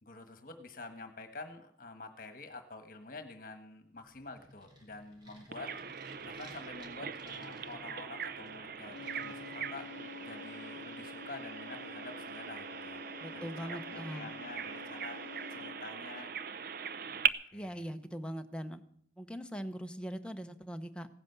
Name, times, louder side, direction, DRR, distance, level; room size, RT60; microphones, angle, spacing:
voice 1, 0.0-5.7 6.2-9.9 10.2-13.0 13.3-15.2 15.5-16.3 17.3-17.9, left 3 dB, 50° left, 7 dB, 1.4 m, -48 dB
sound 1, 3.9-10.3, equal, 25° right, 3.3 m, -57 dB
Bird vocalization bird call bird song, 5.5-17.3, right 8 dB, 55° right, 0.6 m, -40 dB
sound 2, 8.8-16.0, left 6 dB, 80° left, 0.5 m, -49 dB
voice 2, 13.2-14.3 17.5-18.8 19.2-21.1, equal, 5° left, 7 dB, 0.9 m, -41 dB
17.0 x 10.5 x 6.8 m, 0.65 s
head